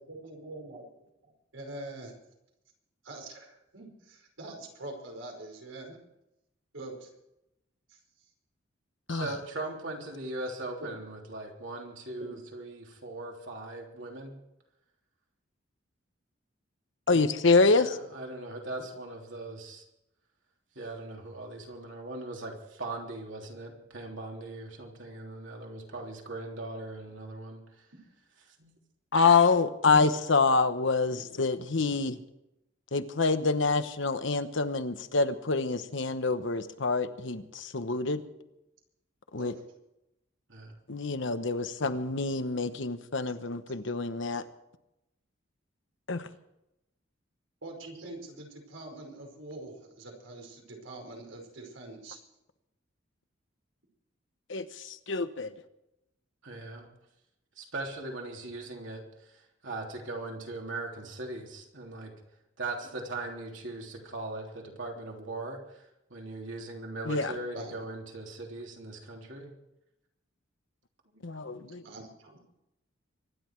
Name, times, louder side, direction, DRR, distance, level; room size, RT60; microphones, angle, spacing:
voice 1, 0.1-2.1 3.0-6.0 6.7-7.1 7.9-8.0 10.8-10.9 17.1-17.2 39.4-39.6 43.3-43.4 47.6-52.2 67.5-67.7 71.8-72.4, right 2 dB, 90° right, 1 dB, 5.1 m, -44 dB
voice 2, 9.1-14.4 17.6-19.8 20.7-27.6 28.6-28.7 40.5-40.7 56.4-56.9 57.6-59.0 59.6-62.1 62.6-65.6 66.1-69.5, right 2 dB, 65° right, 1 dB, 3.4 m, -39 dB
voice 3, 17.1-18.0 29.1-32.2 32.9-38.2 39.3-39.5 40.9-44.4 46.1-46.2 54.5-55.5 67.0-67.3 71.2-71.8, left 4 dB, 70° left, 10 dB, 1.1 m, -26 dB
24.5 x 11.0 x 4.6 m, 0.87 s
head